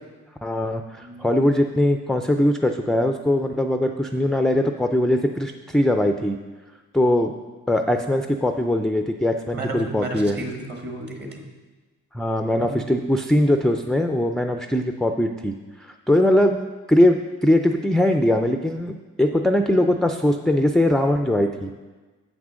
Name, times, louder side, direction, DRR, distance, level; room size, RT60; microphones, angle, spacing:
voice 1, 0.4-6.4 6.9-7.3 7.7-10.4 12.1-15.5 15.8-16.6 16.9-21.7, left 1 dB, ahead, 5 dB, 0.4 m, -21 dB
voice 2, 9.5-11.4 12.7-12.9, right 2 dB, 35° right, 3 dB, 1.6 m, -33 dB
7.3 x 6.0 x 6.3 m, 1.3 s
cardioid pair, 90°, 30 cm